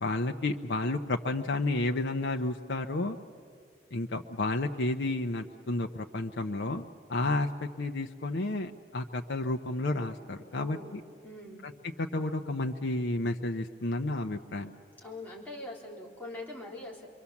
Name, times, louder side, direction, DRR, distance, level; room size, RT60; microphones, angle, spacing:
voice 1, 0.0-3.2 3.9-11.0 11.6-11.7 12.0-14.7, left 2 dB, 90° left, 4 dB, 0.8 m, -31 dB
voice 2, 10.5-11.0 11.2-11.6 15.0-17.1, left 1 dB, 10° left, -4 dB, 3.7 m, -43 dB
27.5 x 23.0 x 7.2 m, 2.2 s
head